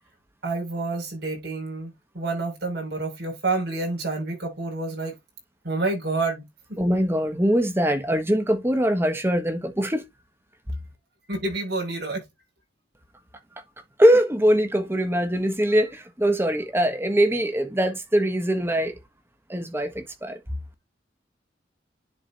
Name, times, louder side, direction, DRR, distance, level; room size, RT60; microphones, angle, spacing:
voice 1, 0.4-5.2 5.6-6.8 11.3-12.2, right 3 dB, 65° right, 5.9 m, -29 dB
voice 2, 6.8-10.0 14.0-19.0 19.5-20.4, equal, 15° right, 1.3 m, -22 dB
11.0 x 4.9 x 2.6 m
head